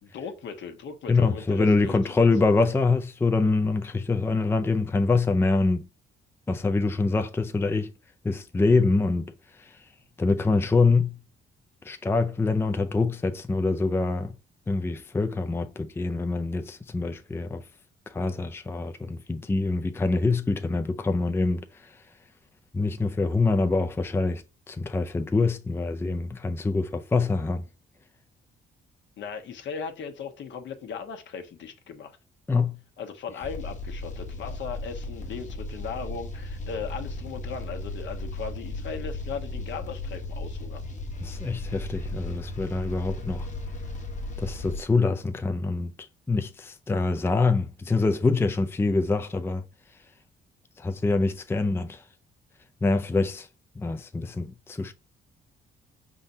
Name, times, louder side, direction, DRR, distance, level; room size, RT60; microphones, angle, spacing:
voice 1, 0.0-2.3 29.2-32.2 33.0-40.8, left 6 dB, 70° left, 1.1 m, -37 dB
voice 2, 1.1-5.9 6.5-7.9 8.2-9.3 9.6-9.8 10.2-11.1 11.8-14.3 14.7-17.6 18.1-21.9 22.7-27.6 32.5-32.8 41.2-43.5 44.4-45.9 46.3-49.6 50.8-52.0 52.8-53.5 53.8-54.9, left 3 dB, 10° left, 0.4 m, -25 dB
sound 1, 33.4-44.8, left 2 dB, 40° left, 1.2 m, -36 dB
5.3 x 3.7 x 2.7 m
cardioid pair, 90°, 20 cm